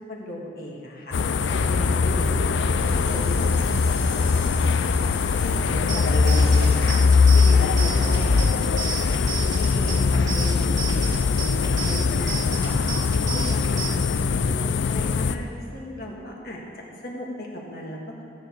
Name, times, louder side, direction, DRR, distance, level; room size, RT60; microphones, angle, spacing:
voice 1, 0.0-4.6 5.0-16.6 17.0-18.2, equal, 55° left, -2 dB, 1.9 m, -36 dB
sound 1, 1.1-15.4, left 4 dB, 80° left, 0.4 m, -21 dB
sound 2, 2.8-7.6, left 1 dB, 25° left, 2.4 m, -39 dB
sound 3, 5.9-13.9, right 6 dB, 20° right, 1.6 m, -34 dB
14.5 x 9.5 x 4.6 m, 2.5 s
head